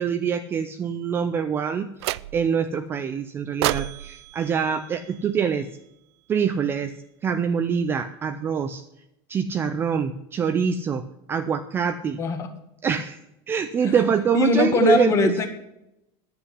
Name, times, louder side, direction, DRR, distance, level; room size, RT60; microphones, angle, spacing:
voice 1, 0.0-5.7 6.3-6.9 7.2-8.8 9.3-11.0 11.3-12.2 12.8-13.2 13.5-15.3, right 7 dB, 15° right, 9 dB, 0.4 m, -24 dB
sound 1, 2.0-2.7 3.6-5.8, right 16 dB, 85° right, 0.4 m, -31 dB
voice 2, 14.3-15.5, left 4 dB, 20° left, 8 dB, 1.5 m, -22 dB
9.9 x 8.0 x 9.6 m, 0.85 s
supercardioid pair, 175°, 14 cm